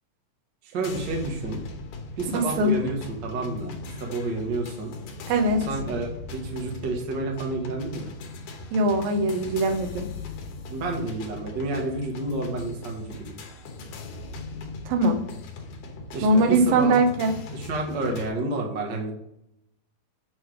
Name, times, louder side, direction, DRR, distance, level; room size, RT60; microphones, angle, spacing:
voice 1, 0.6-1.6 2.2-4.9 5.7-8.1 10.7-13.3 16.1-17.0 17.5-19.1, right 2 dB, 55° right, 0 dB, 1.2 m, -30 dB
sound 1, 0.8-18.3, left 3 dB, 75° left, 2.5 m, -39 dB
voice 2, 2.3-2.7 5.3-5.7 8.7-10.1 14.9-15.2 16.2-17.3, right 2 dB, 90° right, 6 dB, 2.6 m, -21 dB
8.3 x 3.3 x 4.8 m, 0.80 s
omnidirectional pair, 3.9 m